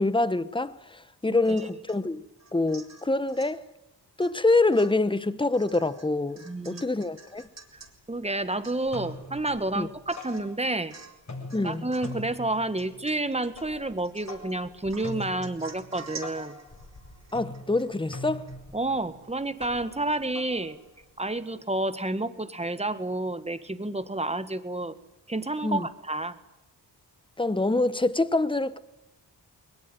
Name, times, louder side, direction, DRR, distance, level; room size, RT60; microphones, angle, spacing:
voice 1, 0.0-2.2 2.5-3.6 4.2-7.5 9.7-9.9 11.5-11.9 17.3-18.5 25.6-25.9 27.4-28.8, left 2 dB, 10° left, 1.1 m, -25 dB
Domestic sounds home sounds / Chink clink / Drip, 1.4-2.0 2.4-3.6 4.2-4.4 4.7-7.9 8.3-8.4 8.6-9.1 9.6-9.7 10.1-10.5 10.9-11.2 11.5-12.2 12.8-13.5 14.0-14.5 14.9-18.2 18.5-18.6, right 4 dB, 40° right, 4.3 m, -48 dB
voice 2, 6.5-6.8 7.7-7.8 8.1-11.0 11.6-16.6 18.7-20.8 21.2-24.9 25.3-26.3, right 2 dB, 15° right, 1.7 m, -30 dB
sound 1, 7.4-7.5 7.8-8.4 8.7-10.9 11.2-21.3, left 2 dB, 40° left, 7.3 m, -43 dB
21.5 x 20.5 x 9.3 m
cardioid pair, 90°, 41 cm